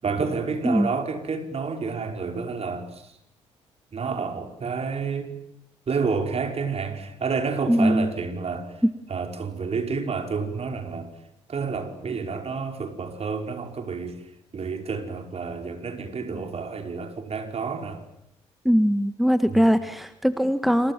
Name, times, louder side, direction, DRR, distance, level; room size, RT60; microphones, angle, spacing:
voice 1, 0.0-3.2 3.9-5.4 5.9-8.7 9.1-11.1 11.5-14.3 14.5-18.0 19.5-19.6, right 5 dB, 45° right, 5 dB, 5.1 m, -29 dB
voice 2, 7.7-8.1 18.6-20.9, equal, ahead, 11 dB, 1.7 m, -21 dB
28.0 x 26.5 x 7.5 m, 0.78 s
figure-of-eight pair, 45°, 15 cm